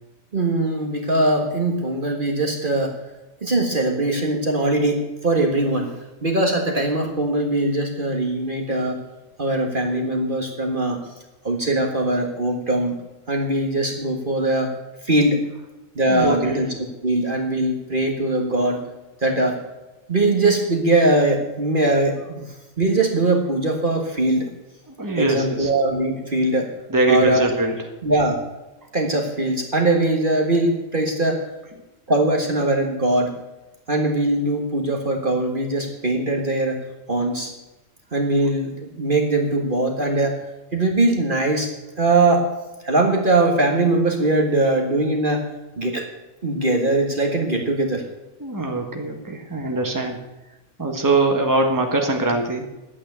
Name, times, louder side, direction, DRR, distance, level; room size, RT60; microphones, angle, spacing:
voice 1, 0.3-3.0 3.4-5.9 6.2-9.0 9.4-11.0 11.4-13.0 13.3-14.7 15.0-15.4 15.9-16.7 17.0-18.8 19.2-19.6 20.1-24.5 25.2-26.7 27.1-27.5 28.0-28.4 28.9-31.5 32.1-33.3 33.9-37.5 38.1-40.4 40.7-42.5 42.8-45.4 45.8-46.1 46.4-48.0, right 2 dB, 40° right, 2 dB, 1.7 m, -21 dB
voice 2, 16.0-16.6 24.9-25.7 26.9-27.8 48.4-50.2 50.8-52.7, right 2 dB, 15° right, 2 dB, 1.7 m, -22 dB
11.5 x 8.9 x 8.0 m, 1.0 s
omnidirectional pair, 1.4 m